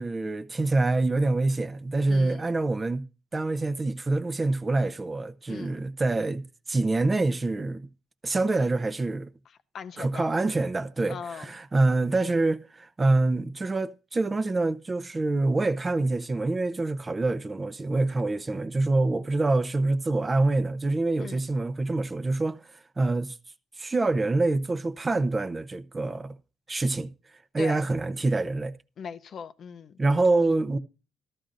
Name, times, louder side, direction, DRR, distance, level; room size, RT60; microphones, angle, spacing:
voice 1, 0.0-3.0 3.3-6.4 6.7-7.9 8.2-9.3 10.0-23.3 23.8-26.3 26.7-27.1 27.5-28.7 30.0-30.8, right 2 dB, 25° right, 0.6 m, -26 dB
voice 2, 2.1-2.5 5.5-5.8 9.7-10.3 11.1-11.5 21.2-21.5 27.6-27.8 29.0-30.6, left 7 dB, 60° left, 0.6 m, -40 dB
14.0 x 13.0 x 2.6 m
cardioid pair, 90°, 0 cm